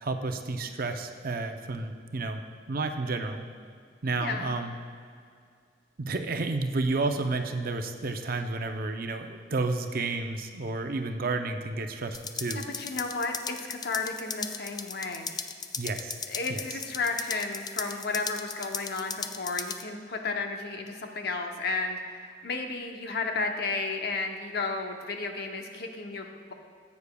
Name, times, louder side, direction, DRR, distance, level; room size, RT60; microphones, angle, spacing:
voice 1, 0.0-2.4 2.7-3.5 4.0-4.7 6.0-12.6 15.8-16.2 16.5-16.8, right 3 dB, 55° right, 6 dB, 0.6 m, -31 dB
voice 2, 4.2-4.5 12.8-15.4 16.3-26.5, left 3 dB, 60° left, 4 dB, 0.8 m, -33 dB
sound 1, 12.1-19.8, left 6 dB, 20° left, 0.3 m, -37 dB
14.5 x 8.3 x 2.3 m, 2.2 s
head